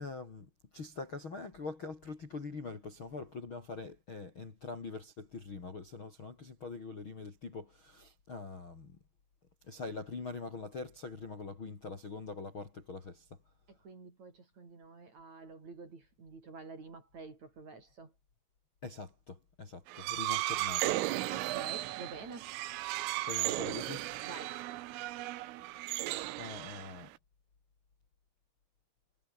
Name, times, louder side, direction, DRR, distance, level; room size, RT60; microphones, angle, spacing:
voice 1, 0.0-9.0 9.7-13.2 18.8-20.9 23.3-24.0 26.4-27.1, left 4 dB, 30° left, 3.1 m, -43 dB
voice 2, 13.7-18.1 21.3-22.6 24.2-24.6, right 3 dB, 35° right, 5.7 m, -49 dB
sound 1, 19.9-27.2, right 17 dB, 85° right, 3.7 m, -35 dB
omnidirectional pair, 5.9 m